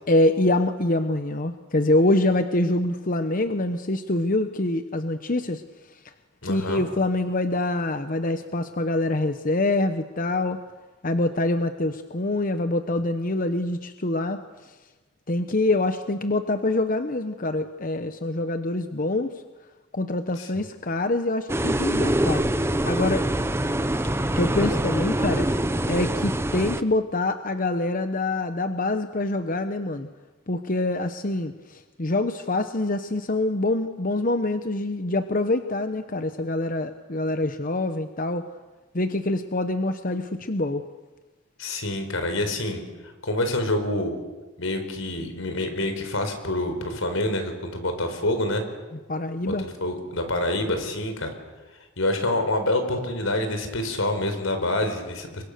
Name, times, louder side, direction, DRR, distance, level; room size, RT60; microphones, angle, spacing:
voice 1, 0.1-5.6 6.4-10.6 11.0-14.7 15.3-19.3 19.9-22.4 22.8-23.2 24.4-25.5 25.9-30.1 30.5-38.4 38.9-40.8 49.1-49.6, left 2 dB, 40° left, 9 dB, 1.0 m, -25 dB
voice 2, 6.4-6.8 20.4-20.6 41.6-42.8 43.2-44.2 44.6-48.6 49.4-51.3 52.0-55.4, left 1 dB, 85° left, 7 dB, 4.7 m, -27 dB
sound 1, 21.5-26.8, right 1 dB, 10° right, 0.8 m, -24 dB
29.5 x 24.0 x 6.8 m, 1.2 s
head